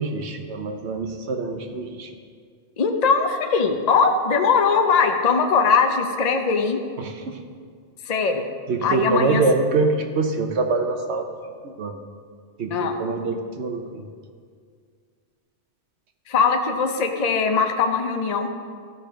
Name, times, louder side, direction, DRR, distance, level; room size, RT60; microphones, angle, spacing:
voice 1, 0.0-2.1 7.0-7.4 8.7-11.3 11.8-12.0 12.6-14.1, right 3 dB, 70° right, 5 dB, 1.1 m, -24 dB
voice 2, 2.8-6.8 8.1-8.4 8.8-9.4 12.7-12.9 16.3-18.5, left 5 dB, 40° left, 4 dB, 0.7 m, -20 dB
13.0 x 5.0 x 6.1 m, 2.1 s
omnidirectional pair, 1.2 m